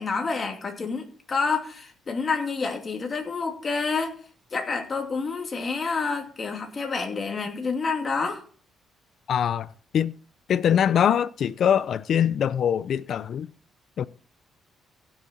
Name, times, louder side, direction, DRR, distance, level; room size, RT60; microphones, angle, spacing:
voice 1, 0.0-4.2 4.5-8.4, left 4 dB, 40° left, 2.6 m, -28 dB
voice 2, 9.3-9.7 9.9-10.1 10.5-13.5 14.0-14.1, left 9 dB, 65° left, 0.6 m, -23 dB
15.5 x 6.5 x 4.5 m
cardioid pair, 90°, 0 cm